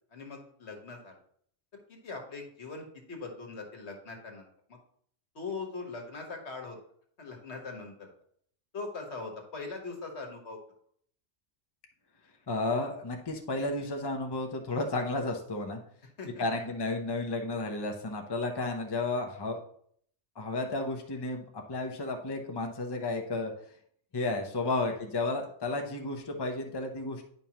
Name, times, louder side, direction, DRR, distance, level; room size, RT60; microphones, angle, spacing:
voice 1, 0.1-1.2 1.9-4.8 5.3-6.8 7.2-8.1 8.7-10.6 16.2-16.7 24.8-24.9, left 3 dB, 70° left, 2 dB, 1.6 m, -41 dB
voice 2, 12.5-15.8 16.4-19.6 20.4-23.5 24.1-27.2, left 2 dB, 25° left, 3 dB, 0.7 m, -32 dB
9.8 x 5.3 x 3.0 m, 0.63 s
omnidirectional pair, 1.2 m